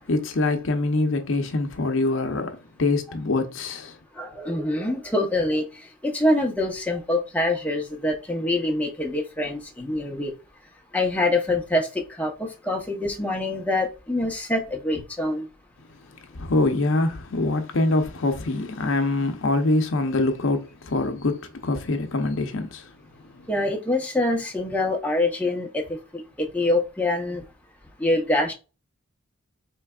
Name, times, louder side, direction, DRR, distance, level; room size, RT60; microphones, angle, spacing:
voice 1, 0.1-4.0 16.3-22.9, left 2 dB, 70° left, 0.6 m, -24 dB
voice 2, 4.2-5.6 6.0-10.3 10.9-15.5 23.5-25.8 26.1-27.4 28.0-28.5, left 1 dB, 5° left, 0.7 m, -25 dB
4.5 x 3.2 x 2.3 m
head